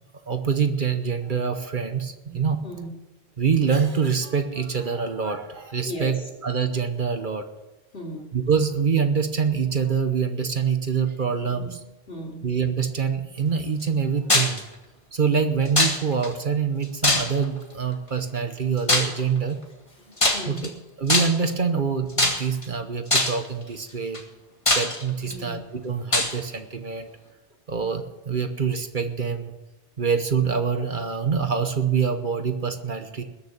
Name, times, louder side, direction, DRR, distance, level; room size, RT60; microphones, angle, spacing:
voice 1, 0.3-2.6 3.4-7.4 8.3-11.8 12.4-14.6 15.1-19.6 20.5-20.7 21.0-24.2 24.7-27.1 27.7-29.5 30.0-33.2, right 6 dB, 50° right, 8 dB, 1.1 m, -25 dB
voice 2, 2.2-2.9 5.8-6.1 7.9-8.3 11.5-11.8 12.1-12.4 20.3-20.7 25.2-25.6, equal, 65° left, -1 dB, 3.5 m, -36 dB
sound 1, 14.3-14.6 15.8-16.3 17.0-17.6 18.9-19.2 20.2-20.7 21.1-21.5 22.2-22.6 23.1-23.5 24.1-24.2 24.7-25.3 26.1-26.3, left 2 dB, 30° left, 1.8 m, -21 dB
20.0 x 6.8 x 7.3 m, 1.0 s
omnidirectional pair, 1.1 m